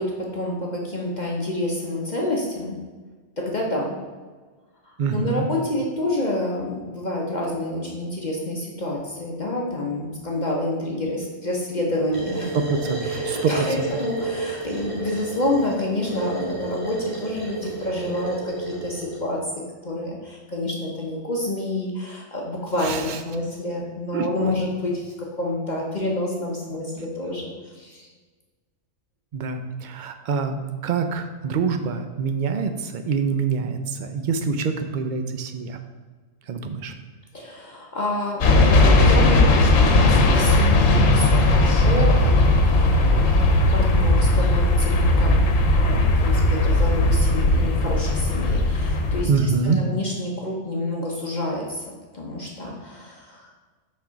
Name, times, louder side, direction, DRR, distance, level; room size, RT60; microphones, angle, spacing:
voice 1, 0.0-2.8 3.4-4.0 4.8-12.6 12.8-28.1 37.3-45.5 45.8-53.5, left 1 dB, 40° left, -2 dB, 0.9 m, -28 dB
voice 2, 5.0-5.5 12.7-13.9 22.8-23.2 24.1-24.5 29.3-35.8 36.5-36.9 49.3-49.8, right 5 dB, 55° right, 7 dB, 0.6 m, -25 dB
sound 1, 12.1-19.2, right 3 dB, 25° right, 2.0 m, -31 dB
sound 2, 38.4-49.2, left 2 dB, 80° left, 1.2 m, -17 dB
5.9 x 4.5 x 5.1 m, 1.4 s
omnidirectional pair, 1.3 m